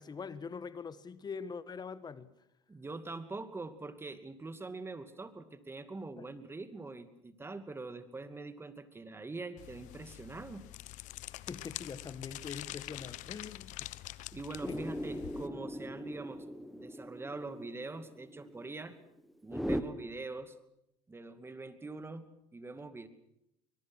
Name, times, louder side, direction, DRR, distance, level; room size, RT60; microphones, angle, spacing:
voice 1, 0.0-2.3 6.2-6.3 11.3-13.9 14.7-14.8, left 5 dB, 30° left, 1.5 m, -43 dB
voice 2, 2.7-10.6 14.3-16.5 16.7-19.0 19.4-20.5 21.1-23.1, right 3 dB, 15° right, 2.5 m, -44 dB
sound 1, 9.6-15.5, left 17 dB, 65° left, 1.0 m, -46 dB
sound 2, 14.6-19.8, equal, ahead, 1.6 m, -39 dB
24.5 x 22.0 x 6.2 m
supercardioid pair, 90°, 14 cm